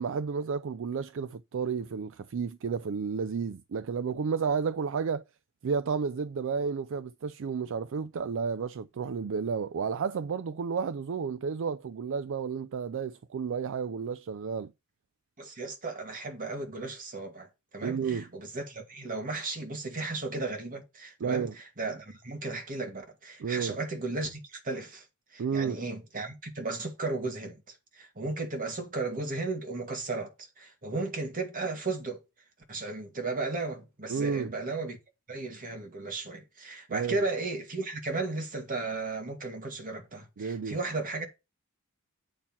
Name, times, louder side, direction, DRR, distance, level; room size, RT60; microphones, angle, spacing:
voice 1, 0.0-5.2 5.6-14.7 17.8-18.2 21.2-21.5 23.4-23.8 25.4-25.8 34.1-34.5 36.9-37.2 40.4-40.8, right 6 dB, 65° right, 0.4 m, -31 dB
voice 2, 15.4-25.1 25.3-32.2 32.7-35.0 35.3-41.3, right 3 dB, 40° right, 2.0 m, -35 dB
8.6 x 4.5 x 5.6 m
head